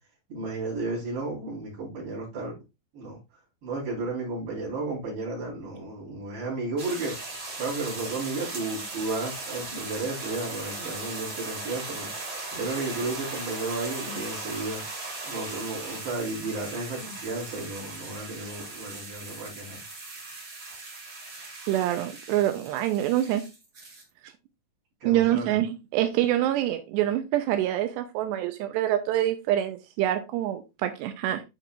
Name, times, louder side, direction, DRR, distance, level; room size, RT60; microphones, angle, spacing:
voice 1, 0.3-2.5 2.9-3.2 3.6-7.1 7.6-12.1 12.5-14.8 15.3-19.8 25.0-25.6, right 3 dB, 65° right, 6.1 m, -33 dB
sound 1, 6.8-24.0, right 2 dB, 40° right, 1.5 m, -38 dB
voice 2, 21.7-23.5 25.0-31.4, right 13 dB, 85° right, 2.8 m, -26 dB
12.0 x 4.6 x 2.5 m
omnidirectional pair, 5.0 m